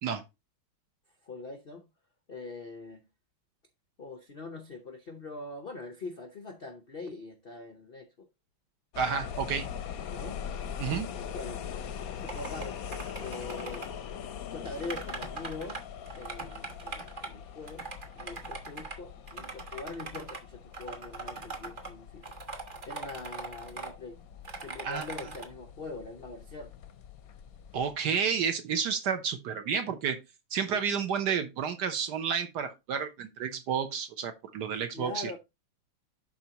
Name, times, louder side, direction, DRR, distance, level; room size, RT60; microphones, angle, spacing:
voice 1, 1.2-1.8 2.3-3.0 4.0-8.3 10.1-10.4 11.3-11.8 12.2-12.8 13.2-13.9 14.5-15.8 16.1-17.8 18.1-22.3 22.9-24.2 24.6-26.7 30.7-30.8 34.9-35.4, left 3 dB, 90° left, 0.5 m, -42 dB
sound 1, 8.9-27.9, left 8 dB, 65° left, 0.9 m, -42 dB
voice 2, 9.0-9.7 10.8-11.1 24.8-25.0 27.7-30.2 30.5-35.3, right 7 dB, 60° right, 1.3 m, -31 dB
sound 2, 12.3-12.7 12.9-13.9 14.7-15.8 16.1-17.3 17.7-19.0 19.3-20.4 20.7-21.9 22.2-23.9 24.4-25.5, right 4 dB, 35° right, 1.0 m, -41 dB
11.5 x 4.4 x 2.9 m
omnidirectional pair, 2.3 m